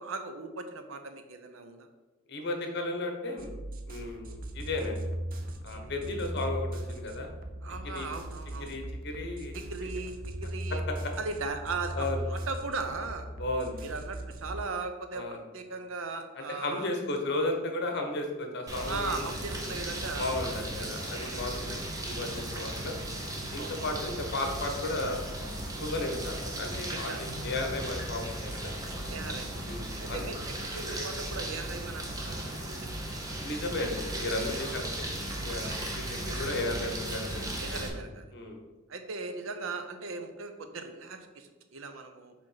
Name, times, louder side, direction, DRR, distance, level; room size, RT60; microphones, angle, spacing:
voice 1, 0.0-1.9 5.7-5.9 7.6-8.7 9.5-10.1 10.4-10.8 11.2-13.3 13.8-16.9 18.9-20.9 21.2-21.7 22.5-22.7 23.6-23.7 26.9-27.2 29.1-29.7 30.0-32.9 34.6-34.7 35.7-35.9 37.6-38.2 38.9-42.3, right 3 dB, 75° right, 7 dB, 0.7 m, -38 dB
voice 2, 2.3-3.5 3.9-5.0 5.6-7.3 7.9-8.1 8.6-9.5 10.9-11.1 11.9-12.2 13.4-13.8 15.1-15.4 16.4-19.2 20.2-22.9 23.5-25.2 25.8-28.7 29.7-30.3 33.4-35.1 35.4-37.8 38.3-38.6, left 2 dB, 55° left, 3 dB, 1.0 m, -34 dB
sound 1, 3.4-14.7, right 1 dB, 45° right, 0.6 m, -38 dB
sound 2, 18.7-37.9, right 1 dB, 15° right, 0.9 m, -36 dB
5.1 x 3.6 x 5.7 m, 1.2 s
head